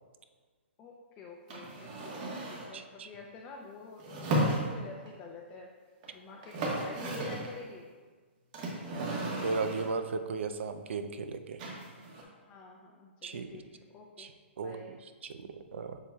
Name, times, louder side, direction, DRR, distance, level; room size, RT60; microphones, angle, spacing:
voice 1, 0.8-5.7 6.1-7.8 8.8-9.1 12.5-13.6 13.9-14.3 14.6-14.9, left 3 dB, 20° left, -1 dB, 0.5 m, -49 dB
sound 1, 1.5-2.8 4.0-5.1 6.0-6.1 6.3-7.6 8.5-10.0 11.6-12.2, right 1 dB, 40° right, 1.4 m, -34 dB
voice 2, 2.7-3.1 9.0-11.6 13.2-13.6 14.2-16.0, right 4 dB, 70° right, 9 dB, 0.5 m, -36 dB
7.2 x 6.7 x 2.3 m, 1.5 s
hypercardioid pair, 150°, 7 cm